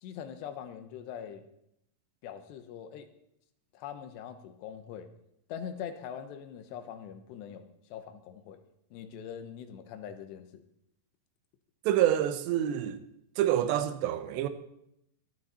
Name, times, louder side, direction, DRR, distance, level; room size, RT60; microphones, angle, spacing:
voice 1, 0.0-1.5 2.2-3.1 3.7-5.1 5.5-7.7 7.9-8.6 8.9-10.6, left 8 dB, 85° left, 3.2 m, -42 dB
voice 2, 11.9-13.0 13.4-14.5, right 11 dB, 90° right, 3.1 m, -27 dB
16.0 x 12.5 x 4.2 m
omnidirectional pair, 4.9 m